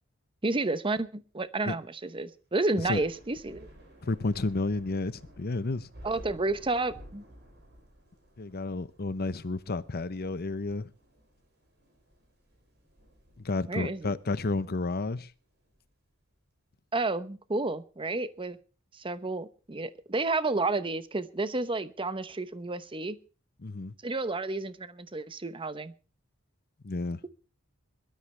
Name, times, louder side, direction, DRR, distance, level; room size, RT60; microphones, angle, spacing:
voice 1, 0.4-3.7 6.0-7.2 13.7-14.2 16.9-18.6 18.9-23.2 24.0-25.9, right 2 dB, 25° right, 0.9 m, -31 dB
Thunder / Rain, 2.6-15.8, equal, 55° right, 6.3 m, -54 dB
voice 2, 4.0-5.9 8.4-10.9 13.4-15.3 23.6-23.9 26.8-27.2, left 3 dB, 50° left, 0.8 m, -31 dB
22.0 x 12.5 x 3.3 m
head